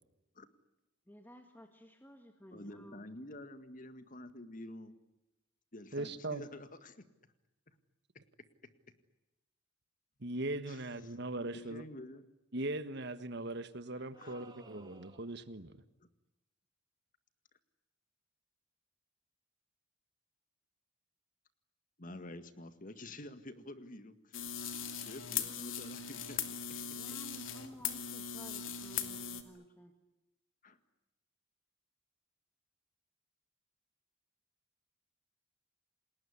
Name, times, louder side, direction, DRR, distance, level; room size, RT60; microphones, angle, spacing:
voice 1, 1.1-3.0 27.0-29.9, equal, 10° left, 5 dB, 1.8 m, -55 dB
voice 2, 2.5-5.0 5.7-7.0 10.7-11.2 11.5-12.3 13.9-14.5 16.0-16.1 22.0-24.4 24.9-26.4 29.5-29.6 30.6-30.8, left 1 dB, 40° left, 11 dB, 1.9 m, -49 dB
voice 3, 5.9-6.4 10.2-11.8 12.5-15.8, right 2 dB, 55° right, 12 dB, 1.5 m, -39 dB
sound 1, 14.1-15.5, right 2 dB, 20° right, 2.6 m, -58 dB
sound 2, 24.3-29.4, left 8 dB, 80° left, 2.7 m, -39 dB
29.0 x 20.0 x 9.9 m, 0.96 s
head